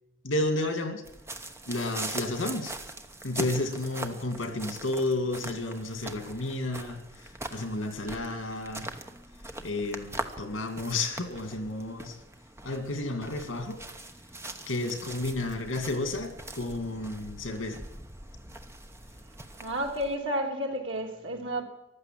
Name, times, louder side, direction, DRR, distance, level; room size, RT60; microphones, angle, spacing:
voice 1, 0.2-1.0 1.7-2.7 3.2-8.9 9.6-12.2 12.6-13.8 14.7-17.8, left 2 dB, 80° left, 7 dB, 2.4 m, -32 dB
sound 1, 1.0-20.1, right 2 dB, 15° right, 1.0 m, -42 dB
voice 2, 19.6-21.6, equal, 80° right, 1 dB, 3.1 m, -31 dB
15.0 x 12.0 x 7.7 m, 0.89 s
head